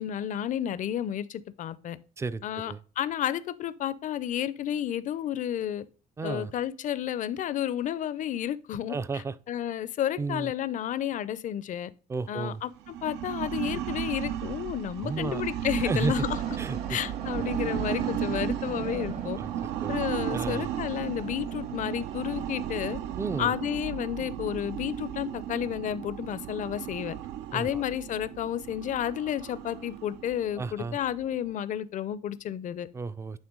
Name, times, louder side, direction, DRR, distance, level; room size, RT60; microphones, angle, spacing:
voice 1, 0.0-2.0 2.4-5.9 6.2-9.0 9.5-11.9 12.3-16.4 16.9-19.4 19.9-23.0 23.4-27.2 27.5-32.9, left 10 dB, 50° left, 0.5 m, -31 dB
voice 2, 2.2-2.8 6.2-6.5 8.9-9.4 10.2-10.5 12.1-12.6 15.0-15.4 15.8-16.3 16.6-17.0 19.4-19.5 19.8-19.9 20.3-20.7 23.2-23.5 27.5-27.8 30.6-31.0 32.9-33.4, right 4 dB, 15° right, 0.3 m, -33 dB
sound 1, 12.8-31.5, right 11 dB, 80° right, 0.5 m, -34 dB
sound 2, 16.3-24.0, right 4 dB, 40° right, 0.8 m, -44 dB
8.8 x 3.4 x 3.7 m
cardioid pair, 110°, 17 cm